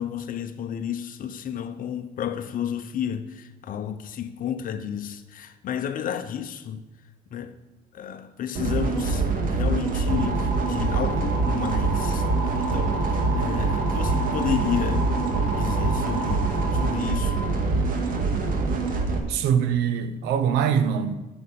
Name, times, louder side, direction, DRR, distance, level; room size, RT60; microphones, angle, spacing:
voice 1, 0.0-6.8 7.3-7.6 7.9-15.1 15.4-17.4, left 9 dB, 55° left, 0.9 m, -31 dB
sound 1, 8.5-19.2, right 3 dB, 55° right, 2.0 m, -25 dB
sound 2, 10.1-17.4, right 3 dB, 70° right, 2.9 m, -33 dB
voice 2, 19.3-21.1, right 8 dB, 90° right, 1.0 m, -23 dB
9.0 x 7.2 x 8.6 m
cardioid pair, 110°, 17 cm